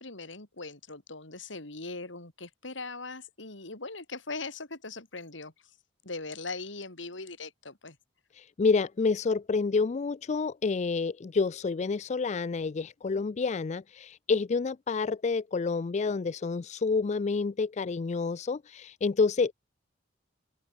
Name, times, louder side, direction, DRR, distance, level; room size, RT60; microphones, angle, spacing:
voice 1, 0.0-5.5 6.0-8.0, left 3 dB, 85° left, 4.0 m, -40 dB
voice 2, 8.4-19.5, left 4 dB, 40° left, 0.4 m, -28 dB
open air
head